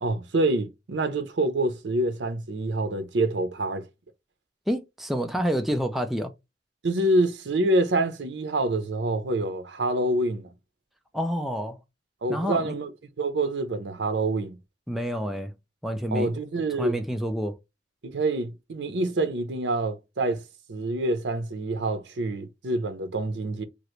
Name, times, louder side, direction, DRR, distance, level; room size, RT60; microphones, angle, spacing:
voice 1, 0.0-3.9 6.8-10.5 12.2-12.9 13.2-14.6 16.1-17.0 18.0-20.4 20.7-23.6, right 2 dB, 80° right, 0.6 m, -26 dB
voice 2, 4.7-6.3 11.1-11.8 12.3-12.7 14.9-15.5 15.8-16.3 16.8-17.6, equal, ahead, 0.3 m, -28 dB
2.9 x 2.5 x 3.0 m
head